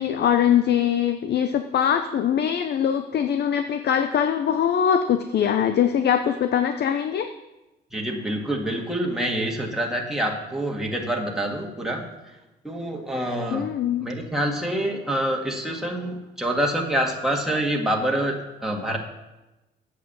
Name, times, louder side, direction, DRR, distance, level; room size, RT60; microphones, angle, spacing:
voice 1, 0.0-7.3 13.5-14.1, left 9 dB, 55° left, 8 dB, 0.7 m, -22 dB
voice 2, 7.9-12.1 12.6-13.7 14.0-19.0, right 1 dB, ahead, -1 dB, 1.9 m, -26 dB
8.4 x 7.8 x 7.1 m, 1.0 s
cardioid pair, 90°, 20 cm